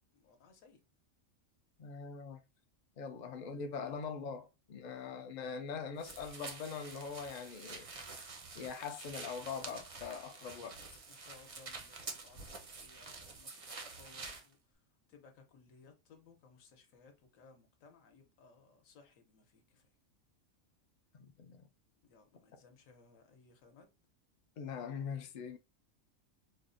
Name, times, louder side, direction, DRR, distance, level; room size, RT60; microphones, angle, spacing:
voice 1, 0.1-0.8 5.4-5.7 10.4-14.8 15.1-19.9 22.0-23.9, left 4 dB, 80° left, 1.2 m, -62 dB
voice 2, 1.8-2.4 3.0-8.1 8.5-10.8 21.1-21.7 22.5-22.6 24.6-25.6, left 6 dB, 65° left, 0.4 m, -42 dB
sound 1, 6.0-14.5, right 4 dB, 45° right, 0.4 m, -48 dB
4.2 x 2.0 x 2.5 m
omnidirectional pair, 1.4 m